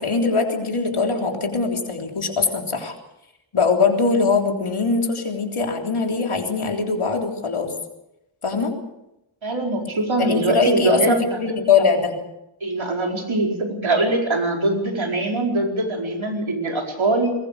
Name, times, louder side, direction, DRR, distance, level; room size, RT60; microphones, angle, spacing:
voice 1, 0.0-2.9 3.5-7.7 8.4-8.7 10.2-12.2, left 4 dB, 90° left, 2 dB, 3.6 m, -21 dB
voice 2, 9.4-11.2 12.6-17.3, right 2 dB, 70° right, 1 dB, 4.8 m, -22 dB
22.0 x 20.5 x 6.7 m, 0.87 s
wide cardioid pair, 60°, 49 cm